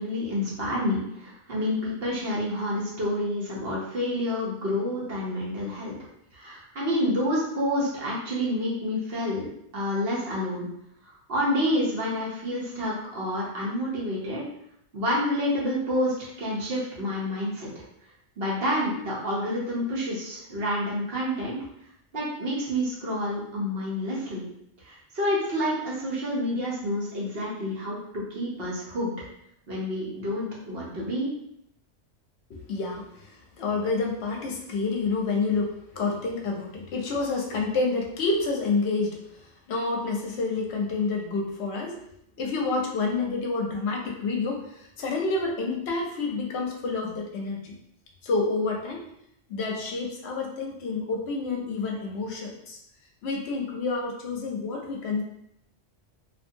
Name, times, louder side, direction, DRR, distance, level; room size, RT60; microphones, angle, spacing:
voice 1, 0.0-5.9 6.3-9.4 9.7-10.7 11.0-14.4 14.9-17.8 18.4-21.6 22.1-24.4 24.8-29.1 29.7-31.3, left 1 dB, 60° right, -6 dB, 1.0 m, -28 dB
voice 2, 32.5-42.0 42.4-47.7 48.2-49.0 49.5-52.8 53.2-55.2, left 3 dB, 70° left, 0 dB, 0.8 m, -29 dB
2.6 x 2.5 x 2.7 m, 0.76 s
omnidirectional pair, 1.2 m